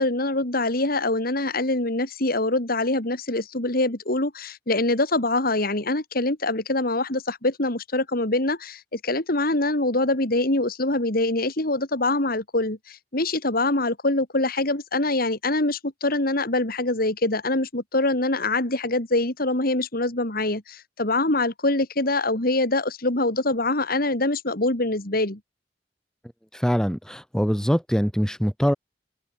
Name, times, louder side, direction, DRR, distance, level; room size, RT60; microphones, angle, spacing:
voice 1, 0.0-25.4, left 2 dB, 55° left, 3.6 m, -24 dB
voice 2, 26.5-28.7, equal, 5° left, 6.0 m, -23 dB
open air
head